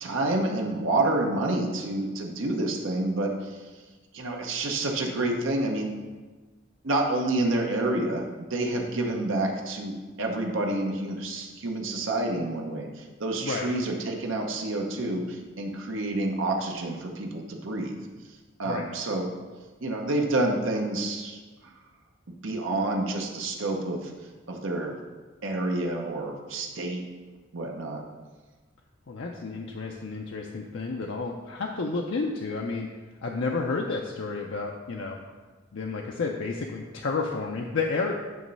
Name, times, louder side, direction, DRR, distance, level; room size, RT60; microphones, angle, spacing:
voice 1, 0.0-3.6 4.1-6.0 6.8-18.0 18.6-19.3 19.8-21.4 22.4-24.1 24.5-25.0 25.4-27.0 27.5-28.0, right 2 dB, 75° right, 1 dB, 0.8 m, -28 dB
voice 2, 29.1-32.9 33.2-35.2 35.7-38.1, left 4 dB, 65° left, 0 dB, 0.5 m, -31 dB
9.3 x 3.1 x 5.4 m, 1.3 s
head